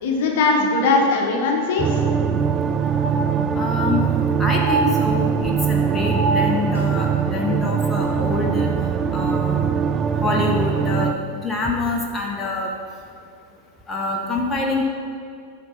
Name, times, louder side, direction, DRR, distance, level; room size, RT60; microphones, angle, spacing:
voice 1, 0.0-2.1, left 3 dB, 50° left, 1 dB, 1.1 m, -20 dB
sound 1, 1.8-11.1, right 7 dB, 30° right, 0.3 m, -22 dB
sound 2, 1.8-1.9 2.3-2.4 2.8-3.8 4.4-5.5 5.9-6.9 8.2-8.3, right 2 dB, 70° right, 1.5 m, -27 dB
voice 2, 3.5-4.0 4.4-8.7 9.1-9.7 10.2-12.7 13.9-14.9, left 2 dB, 15° left, -1 dB, 0.9 m, -25 dB
7.7 x 4.1 x 5.8 m, 2.4 s
figure-of-eight pair, 90°, 0 cm